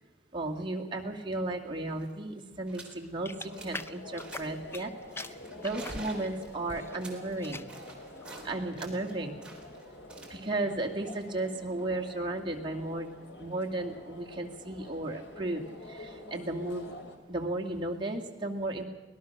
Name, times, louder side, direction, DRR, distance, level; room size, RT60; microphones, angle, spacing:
voice 1, 0.3-4.9 5.2-5.4 5.6-7.7 8.4-9.4 10.2-13.1 13.4-17.0 17.3-18.8, right 2 dB, 30° right, 0 dB, 2.3 m, -34 dB
sound 1, 1.6-1.7 1.9-2.2 2.7-3.0 3.3-3.9 4.2-4.6 5.1-8.5 8.8-11.8, right 2 dB, 5° right, 3.8 m, -49 dB
sound 2, 3.2-4.9 5.1-7.0 7.3-7.8 8.2-8.5, left 2 dB, 15° left, 0.6 m, -42 dB
sound 3, 3.4-17.2, left 2 dB, 80° left, 2.9 m, -47 dB
24.0 x 18.0 x 6.6 m, 1.2 s
head